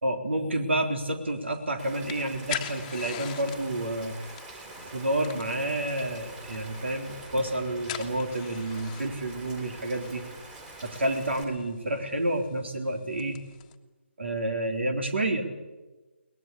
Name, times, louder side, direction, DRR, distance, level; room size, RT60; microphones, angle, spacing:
voice 1, 0.0-4.2 4.6-10.2 10.8-13.4 14.2-15.4, right 1 dB, 70° right, 5 dB, 3.6 m, -29 dB
sound 1, 1.3-13.7, left 11 dB, 20° left, 1.5 m, -44 dB
Rain, 1.8-11.4, right 2 dB, 15° right, 3.9 m, -45 dB
22.5 x 19.5 x 8.5 m, 1.2 s
figure-of-eight pair, 145°, 6 cm